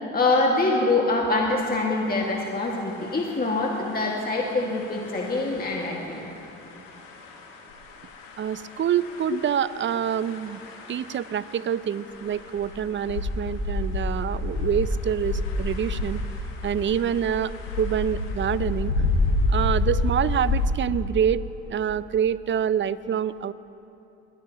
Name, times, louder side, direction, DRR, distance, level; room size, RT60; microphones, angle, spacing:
voice 1, 0.1-6.3, left 2 dB, 25° left, -2 dB, 2.0 m, -24 dB
sound 1, 2.4-20.7, left 2 dB, 85° left, 1.7 m, -30 dB
voice 2, 8.4-10.6 10.9-16.2 16.6-17.5 17.8-18.9 19.5-21.4 21.7-23.5, right 9 dB, 30° right, 17 dB, 0.5 m, -26 dB
21.5 x 16.5 x 3.0 m, 2.9 s
hypercardioid pair, 60°, 38 cm